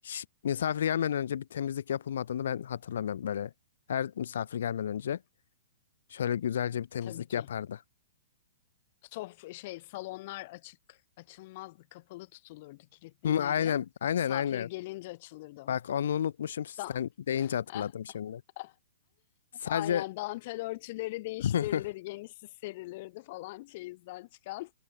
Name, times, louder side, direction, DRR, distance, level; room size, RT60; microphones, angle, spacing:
voice 1, 0.0-3.5 3.9-5.2 6.1-7.8 13.2-14.7 15.7-18.4 19.6-20.0 21.4-21.8, left 9 dB, 70° left, 0.5 m, -31 dB
voice 2, 7.0-7.5 9.0-13.8 14.1-15.8 16.8-17.0 17.4-17.9 18.6-18.7 19.7-24.7, left 19 dB, 50° left, 0.9 m, -41 dB
hypercardioid pair, 130°, 0 cm